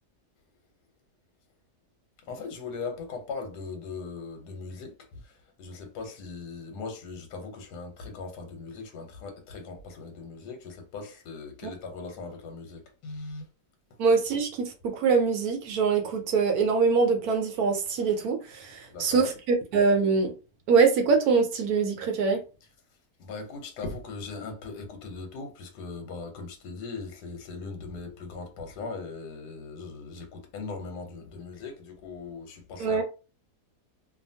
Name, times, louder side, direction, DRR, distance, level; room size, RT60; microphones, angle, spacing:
voice 1, 2.3-5.2 5.6-13.5 18.9-19.3 23.2-33.0, left 4 dB, 80° left, 1.3 m, -39 dB
voice 2, 14.0-20.3 20.7-22.4 32.8-33.0, right 5 dB, 70° right, 1.1 m, -24 dB
2.8 x 2.4 x 2.6 m
omnidirectional pair, 1.7 m